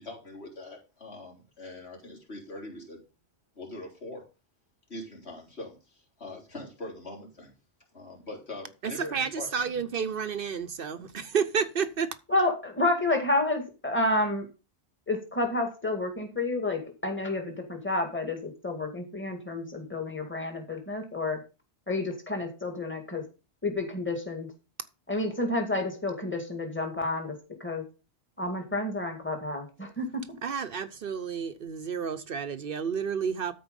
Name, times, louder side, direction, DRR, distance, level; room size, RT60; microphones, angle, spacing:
voice 1, 0.0-3.0 3.6-4.2 4.9-7.5 7.9-9.7, left 2 dB, 75° left, 3.8 m, -42 dB
voice 2, 8.8-12.1 30.4-33.5, right 6 dB, 60° right, 0.9 m, -31 dB
voice 3, 12.3-14.5 15.1-21.4 21.9-23.2 23.6-24.5 25.1-27.4 27.6-27.8 28.4-30.2, left 2 dB, 10° left, 2.1 m, -30 dB
13.0 x 4.6 x 5.3 m
omnidirectional pair, 1.1 m